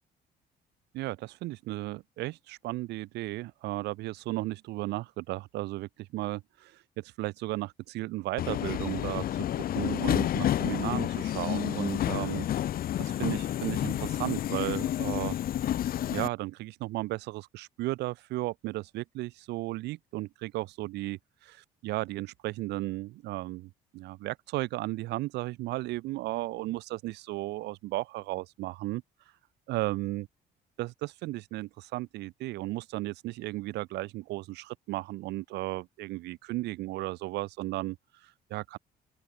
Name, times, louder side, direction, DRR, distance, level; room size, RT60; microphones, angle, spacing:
voice 1, 0.9-12.4 13.0-15.7 16.1-29.0 29.7-30.3 30.8-38.8, right 18 dB, 85° right, 6.6 m, -35 dB
Subway metro underground, 8.4-16.3, left 12 dB, 60° left, 2.5 m, -30 dB
open air
cardioid pair, 110°, 17 cm